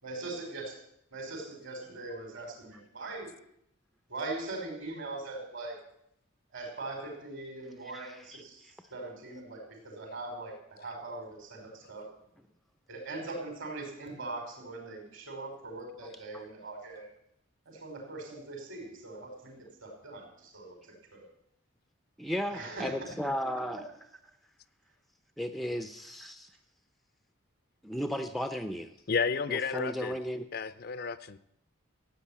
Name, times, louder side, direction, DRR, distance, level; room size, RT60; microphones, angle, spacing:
voice 1, 0.0-0.7 1.1-3.3 4.1-5.8 6.5-12.1 12.9-17.1 17.7-19.2 19.4-19.6 19.8-21.2 22.5-22.9 23.7-23.8, right 2 dB, 65° right, 2 dB, 5.4 m, -41 dB
voice 2, 8.0-8.4 22.2-23.8 25.4-26.5 27.8-28.9 29.5-30.5, equal, ahead, 9 dB, 0.6 m, -35 dB
voice 3, 29.1-30.1 30.5-31.4, left 5 dB, 45° left, 15 dB, 0.6 m, -31 dB
15.5 x 9.0 x 8.8 m, 0.75 s
head